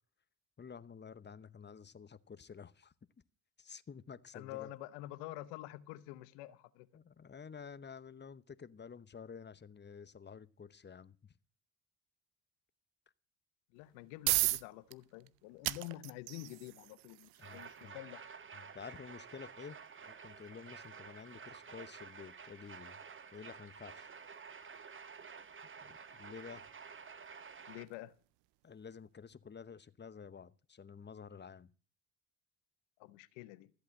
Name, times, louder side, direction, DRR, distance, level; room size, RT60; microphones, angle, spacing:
voice 1, 0.6-2.9 3.6-4.7 6.9-11.3 17.4-18.0 18.5-19.8 20.1-23.0 23.3-24.1 25.8-26.7 28.6-31.7, left 6 dB, 25° left, 0.9 m, -51 dB
voice 2, 4.3-6.9 13.7-18.3 27.7-28.1 33.0-33.7, left 16 dB, 85° left, 0.9 m, -48 dB
sound 1, 13.8-28.6, right 21 dB, 85° right, 0.6 m, -42 dB
sound 2, 17.4-27.8, right 6 dB, 30° right, 1.2 m, -51 dB
14.0 x 8.3 x 7.6 m
hypercardioid pair, 55°, 40 cm